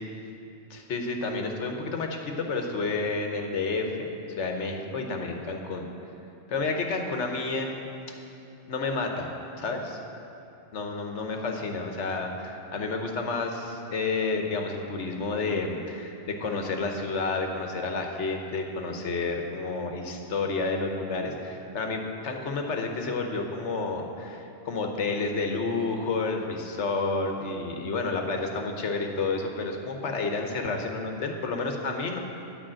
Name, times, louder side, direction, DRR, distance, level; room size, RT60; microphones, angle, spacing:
voice 1, 0.7-4.1 4.4-5.9 6.5-7.9 8.7-9.3 9.6-10.0 10.7-32.2, left 3 dB, 80° left, 3 dB, 1.3 m, -30 dB
11.5 x 5.4 x 7.6 m, 2.8 s
omnidirectional pair, 1.2 m